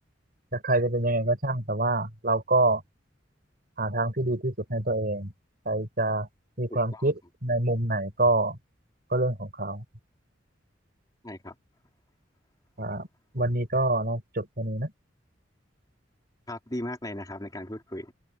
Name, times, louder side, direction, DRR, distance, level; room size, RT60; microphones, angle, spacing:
voice 1, 0.5-2.8 3.8-5.3 5.6-6.3 6.6-8.6 9.1-9.8 12.8-13.1 13.3-14.9, right 2 dB, 55° right, 4.6 m, -26 dB
voice 2, 6.7-7.1 11.2-11.6 16.5-18.1, left 1 dB, 20° left, 3.7 m, -37 dB
open air
head